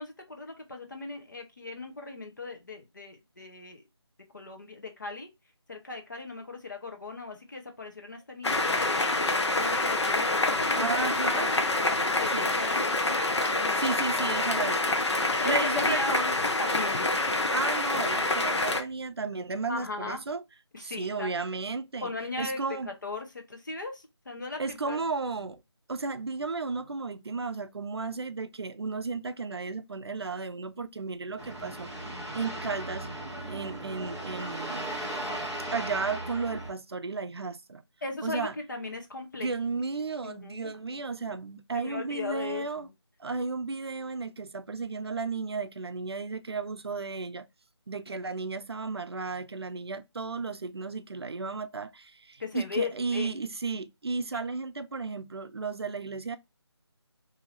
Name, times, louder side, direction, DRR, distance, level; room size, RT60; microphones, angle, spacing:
voice 1, 0.0-3.8 4.3-5.3 5.7-11.6 12.1-12.9 13.6-14.0 15.4-16.3 16.6-17.2 19.7-20.2 20.7-21.3 22.0-25.0 38.0-39.5 40.2-41.0 41.7-42.9 52.4-53.3, left 3 dB, 45° left, 0.8 m, -38 dB
sound 1, 8.4-18.8, left 2 dB, 75° left, 0.7 m, -27 dB
voice 2, 10.8-11.5 12.3-12.5 13.8-15.0 15.4-16.4 17.5-20.4 20.8-22.1 22.4-22.9 24.6-25.6 25.9-33.1 33.5-34.9 35.7-37.8 38.2-38.5 39.4-42.9 43.2-47.5 47.9-56.4, right 4 dB, 65° right, 0.5 m, -34 dB
sound 2, 31.4-36.7, right 1 dB, 5° right, 0.7 m, -37 dB
2.7 x 2.5 x 3.1 m
figure-of-eight pair, 180°, 15 cm